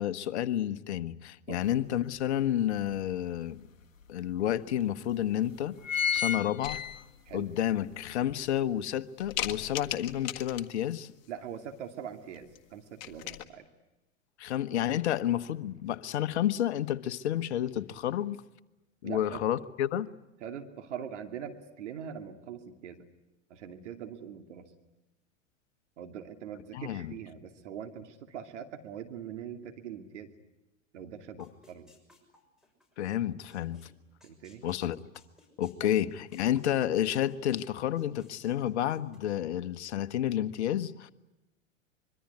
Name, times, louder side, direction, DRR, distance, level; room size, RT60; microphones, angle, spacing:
voice 1, 0.0-3.6 4.1-5.7 6.1-6.8 7.3-11.1 14.4-18.4 19.0-20.1 26.7-27.2 33.0-33.8 34.6-35.0 35.6-41.1, left 11 dB, 60° left, 1.3 m, -30 dB
sound 1, 1.6-1.7 2.2-3.4 4.0-4.1 4.3-4.4 5.1-5.3 5.6-7.4 7.8-7.9, left 8 dB, 80° left, 1.1 m, -32 dB
sound 2, 6.6-7.2 7.8-7.9 8.4-8.8 9.2-10.9 12.3-12.6 12.8-13.4, left 13 dB, 40° left, 1.8 m, -38 dB
voice 2, 11.3-13.7 19.0-19.5 20.4-23.1 23.5-24.7 26.0-30.3 30.9-31.9 34.2-34.6, right 8 dB, 60° right, 2.7 m, -42 dB
sound 3, 31.4-33.1 33.5-33.9 34.2-37.6 37.9-39.2, left 2 dB, ahead, 6.4 m, -61 dB
25.0 x 23.5 x 9.5 m
figure-of-eight pair, 95°, 39 cm